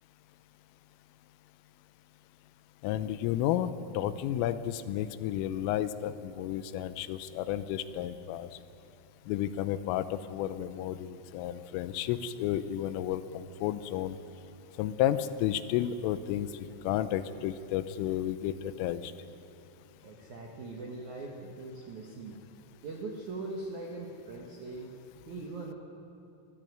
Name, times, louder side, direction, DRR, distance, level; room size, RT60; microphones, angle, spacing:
voice 1, 2.8-8.5 9.3-14.2 14.8-19.1, left 11 dB, 90° left, 13 dB, 3.3 m, -32 dB
voice 2, 20.0-22.4 22.8-24.9 25.3-25.7, right 3 dB, 70° right, 0 dB, 1.8 m, -41 dB
22.0 x 14.0 x 9.5 m, 2.7 s
omnidirectional pair, 5.8 m